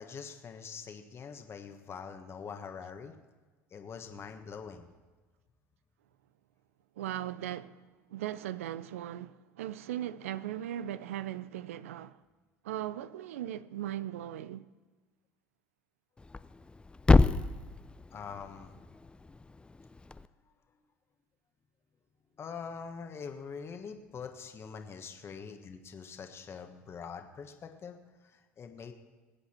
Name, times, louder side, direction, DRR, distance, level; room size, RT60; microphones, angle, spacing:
voice 1, 0.0-3.1 3.7-4.9 18.1-18.8 22.4-28.9, left 6 dB, 35° left, 1.4 m, -44 dB
voice 2, 7.0-12.2 12.6-14.7, right 12 dB, 85° right, 0.5 m, -38 dB
Thump thud, 16.2-20.3, left 3 dB, 15° left, 0.5 m, -29 dB
20.5 x 8.0 x 4.4 m
hypercardioid pair, 80°, 7 cm